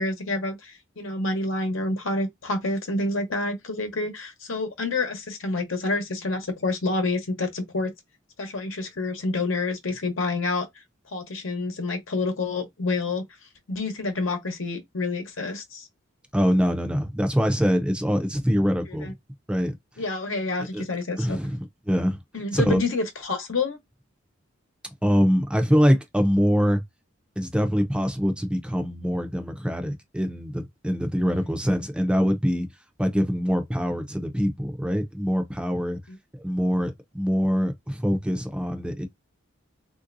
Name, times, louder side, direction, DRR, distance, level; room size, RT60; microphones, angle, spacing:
voice 1, 0.0-7.9 8.4-10.6 11.1-13.2 13.7-15.9 19.0-19.1 20.0-21.4 22.3-23.8 31.3-31.4, left 2 dB, 80° left, 1.0 m, -28 dB
voice 2, 16.3-19.1 19.5-19.7 20.7-20.8 21.2-22.2 22.5-22.8 25.0-26.8 27.4-32.7 33.0-36.0 36.3-39.0, equal, 5° right, 0.5 m, -24 dB
3.3 x 2.6 x 2.5 m
head